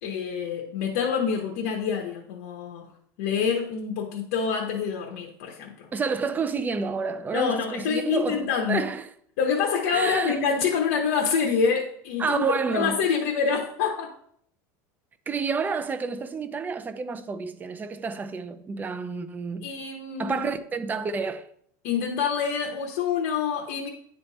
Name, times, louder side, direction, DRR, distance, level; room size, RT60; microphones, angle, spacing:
voice 1, 0.0-2.9 3.2-5.9 7.3-8.9 9.4-14.1 19.6-20.5 21.8-23.9, left 6 dB, 75° left, 1.1 m, -26 dB
voice 2, 5.9-9.0 9.9-10.4 12.2-13.0 15.3-19.8 20.2-21.5, right 5 dB, 20° right, 0.5 m, -29 dB
9.8 x 3.4 x 4.1 m
supercardioid pair, 135°, 9 cm